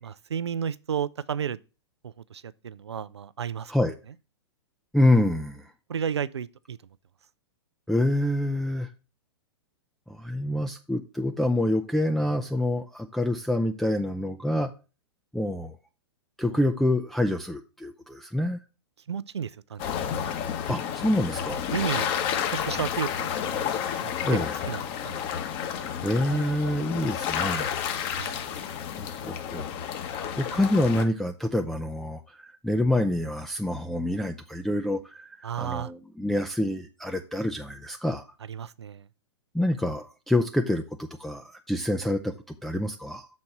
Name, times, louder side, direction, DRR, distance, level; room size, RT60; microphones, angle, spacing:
voice 1, 0.0-1.6 2.0-3.7 5.9-6.8 16.4-16.6 19.1-20.0 21.7-22.1 22.5-23.7 24.0-24.1 24.7-25.2 28.2-28.4 35.4-35.9 38.5-39.1, right 8 dB, 85° right, 0.4 m, -32 dB
voice 2, 4.9-5.7 7.9-8.9 10.1-14.7 15.3-15.8 16.4-18.6 20.7-21.6 24.2-24.5 26.0-27.9 29.2-29.7 30.4-38.3 39.5-43.3, left 1 dB, ahead, 0.5 m, -27 dB
sound 1, 19.8-31.0, left 8 dB, 35° left, 1.0 m, -31 dB
6.4 x 4.2 x 5.8 m
hypercardioid pair, 110°, 14 cm